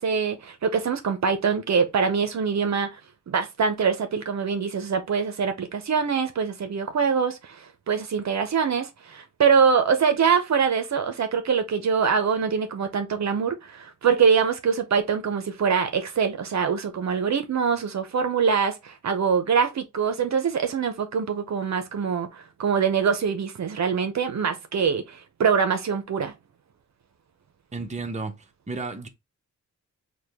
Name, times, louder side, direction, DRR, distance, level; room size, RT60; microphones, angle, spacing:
voice 1, 0.0-3.0 3.3-26.3, right 6 dB, 60° right, 0.6 m, -24 dB
voice 2, 27.7-29.1, right 3 dB, 25° right, 0.7 m, -33 dB
4.8 x 2.2 x 3.4 m
wide cardioid pair, 110°, 31 cm